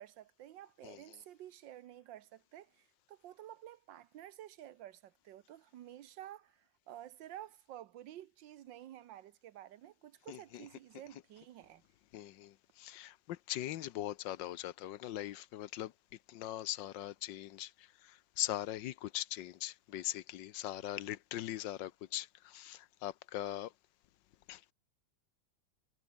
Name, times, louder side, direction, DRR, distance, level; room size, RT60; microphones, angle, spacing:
voice 1, 0.0-11.8, right 12 dB, 85° right, 1.6 m, -51 dB
voice 2, 0.8-1.2 10.3-10.7 12.1-15.9 16.3-23.7 24.5-24.6, left 13 dB, 80° left, 1.5 m, -41 dB
omnidirectional pair, 2.0 m